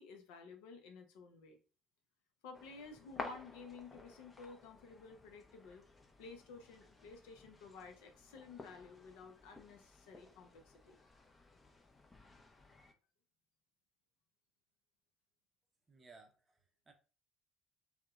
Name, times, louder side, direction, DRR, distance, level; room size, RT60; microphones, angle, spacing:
voice 1, 0.0-1.6 2.4-5.8 6.2-11.0, left 4 dB, 70° left, 5 dB, 0.5 m, -53 dB
sound 1, 2.5-12.9, left 2 dB, 20° left, 0.5 m, -53 dB
voice 2, 15.9-16.9, right 4 dB, 25° right, 3 dB, 0.5 m, -61 dB
2.6 x 2.1 x 2.3 m, 0.35 s
hypercardioid pair, 60°, 0 cm